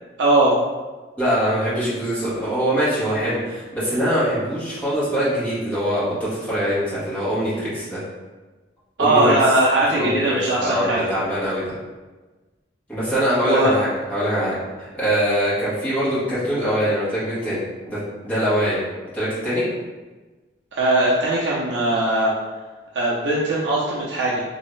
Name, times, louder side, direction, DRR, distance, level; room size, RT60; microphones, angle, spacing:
voice 1, 0.2-0.6 9.0-11.1 13.4-13.7 20.7-22.3 22.9-24.4, right 2 dB, 75° right, -5 dB, 0.5 m, -19 dB
voice 2, 1.2-8.0 9.0-9.3 9.9-11.6 12.9-18.0 18.2-18.8 19.1-19.7, equal, 10° left, -12 dB, 1.5 m, -23 dB
3.1 x 2.7 x 3.1 m, 1.2 s
head